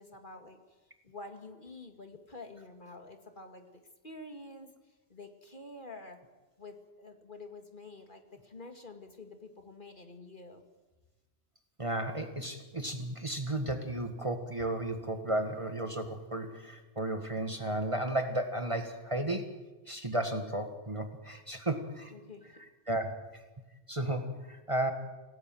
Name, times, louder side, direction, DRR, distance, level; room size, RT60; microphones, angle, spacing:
voice 1, 0.0-3.7 4.0-4.7 5.1-6.2 6.6-10.6 22.1-22.6, left 2 dB, 45° left, 6 dB, 2.3 m, -48 dB
voice 2, 11.8-19.5 19.9-22.1 22.9-23.4 23.9-24.9, right 1 dB, 25° right, 6 dB, 1.8 m, -34 dB
28.0 x 18.0 x 7.7 m, 1.2 s
omnidirectional pair, 1.2 m